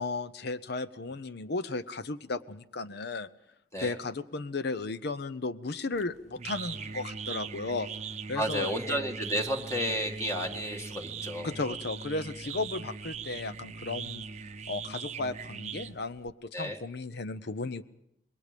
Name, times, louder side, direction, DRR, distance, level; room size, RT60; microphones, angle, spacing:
voice 1, 0.0-3.3 3.8-7.9 8.3-9.0 11.4-14.2 14.7-17.8, left 3 dB, 65° left, 14 dB, 0.8 m, -35 dB
sound 1, 5.9-16.3, right 5 dB, 40° right, 0.7 m, -40 dB
voice 2, 8.4-11.8 16.5-16.8, equal, 15° left, 3 dB, 1.9 m, -32 dB
27.0 x 21.5 x 5.2 m, 0.78 s
head